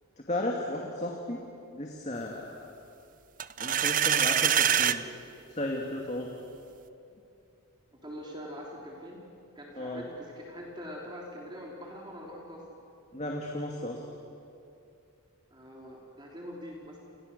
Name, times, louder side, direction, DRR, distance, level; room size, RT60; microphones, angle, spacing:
voice 1, 0.2-1.4 1.7-2.7 3.6-5.1 5.5-6.5 9.8-10.1 13.1-14.0, left 1 dB, 30° left, 0 dB, 2.4 m, -34 dB
sound 1, 3.4-5.0, right 9 dB, 35° right, 0.6 m, -24 dB
voice 2, 7.9-9.3 9.6-12.7 15.5-17.0, equal, 20° right, -2 dB, 3.4 m, -43 dB
29.5 x 29.5 x 6.9 m, 2.6 s
head